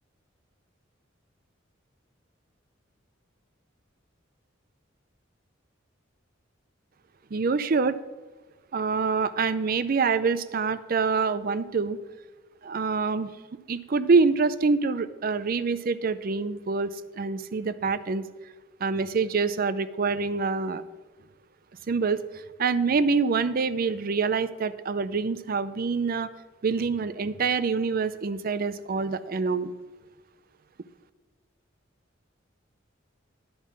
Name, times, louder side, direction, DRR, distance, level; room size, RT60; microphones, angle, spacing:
voice 1, 7.3-8.0 8.7-12.0 12.6-13.3 13.7-18.2 18.8-20.8 21.9-26.3 26.6-29.7, right 4 dB, 45° right, 14 dB, 0.5 m, -26 dB
10.5 x 5.6 x 7.3 m, 1.3 s
head